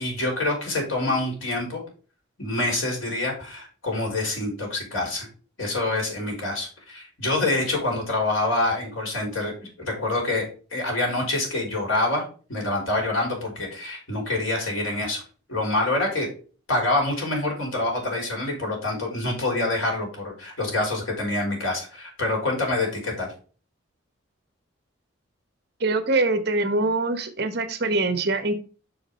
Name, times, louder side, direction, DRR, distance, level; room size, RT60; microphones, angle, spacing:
voice 1, 0.0-1.8 2.4-5.3 5.6-12.2 12.5-15.2 15.5-16.3 16.7-23.3, left 2 dB, 80° left, 0 dB, 3.7 m, -26 dB
voice 2, 25.8-28.6, right 2 dB, 55° right, 9 dB, 1.1 m, -23 dB
6.3 x 4.9 x 5.1 m, 0.37 s
head